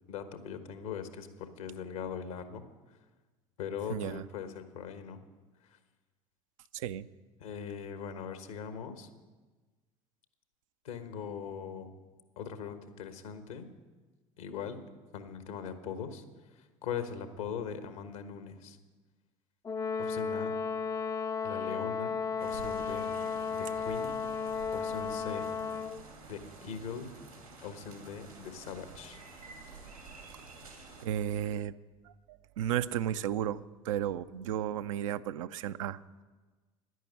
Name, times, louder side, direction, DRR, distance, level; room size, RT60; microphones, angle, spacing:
voice 1, 0.1-2.6 3.6-5.2 5.6-5.8 7.4-9.1 10.8-11.9 12.4-13.7 14.4-14.8 15.1-16.2 16.5-18.8 20.0-20.5 21.4-23.1 23.5-24.2 24.7-25.4 26.3-27.1 27.6-29.2, left 7 dB, 70° left, 9 dB, 1.3 m, -41 dB
voice 2, 3.9-4.2 6.7-7.1 31.0-31.8 32.1-36.0, right 10 dB, 65° right, 12 dB, 0.5 m, -34 dB
Brass instrument, 19.7-26.0, left 5 dB, 20° left, 0.5 m, -34 dB
sound 1, 22.4-31.1, right 3 dB, 90° right, 2.4 m, -50 dB
11.0 x 10.5 x 8.4 m, 1.3 s
figure-of-eight pair, 60°, 18 cm